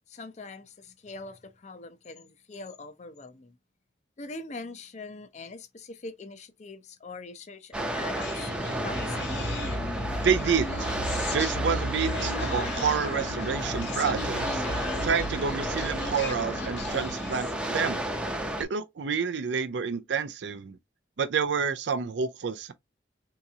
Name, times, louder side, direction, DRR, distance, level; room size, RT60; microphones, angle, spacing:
voice 1, 0.1-3.6 4.2-9.4, left 3 dB, 40° left, 0.5 m, -43 dB
sound 1, 7.7-18.6, right 1 dB, 5° right, 0.6 m, -32 dB
Human voice, 8.2-17.6, left 1 dB, 65° left, 1.3 m, -34 dB
voice 2, 10.2-10.9 11.3-18.0 18.6-20.8 21.2-22.7, right 6 dB, 70° right, 0.4 m, -29 dB
3.8 x 2.8 x 2.4 m
head